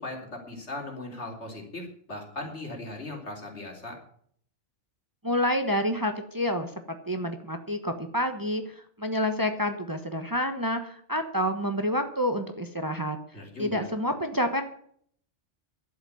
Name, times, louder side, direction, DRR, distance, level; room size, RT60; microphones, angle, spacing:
voice 1, 0.0-4.0 13.3-13.9, left 2 dB, 70° left, 1 dB, 3.8 m, -38 dB
voice 2, 5.2-6.7 7.1-13.2 13.6-14.6, equal, 20° right, 7 dB, 1.1 m, -28 dB
11.5 x 8.1 x 9.6 m, 0.62 s
omnidirectional pair, 1.2 m